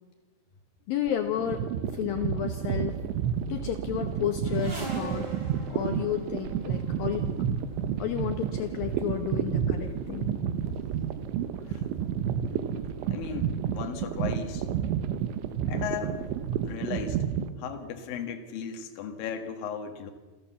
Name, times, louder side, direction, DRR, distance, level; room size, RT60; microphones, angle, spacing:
voice 1, 0.9-1.7 1.9-3.0 3.5-5.3 5.7-7.3 8.0-10.3, left 10 dB, 80° left, 6 dB, 2.1 m, -31 dB
sound 1, 1.4-17.5, right 9 dB, 75° right, 3.2 m, -30 dB
sound 2, 2.8-16.8, right 6 dB, 55° right, 2.3 m, -44 dB
sound 3, 4.4-6.9 7.9-8.1 8.9-9.0 9.2-10.1 10.4-11.0 11.7-11.8 12.1-12.2, right 1 dB, 25° right, 3.0 m, -42 dB
voice 2, 13.1-14.7 15.7-16.3 16.6-17.2 17.6-20.1, left 7 dB, 55° left, 4 dB, 3.0 m, -36 dB
28.0 x 14.5 x 7.2 m, 1.3 s
omnidirectional pair, 5.6 m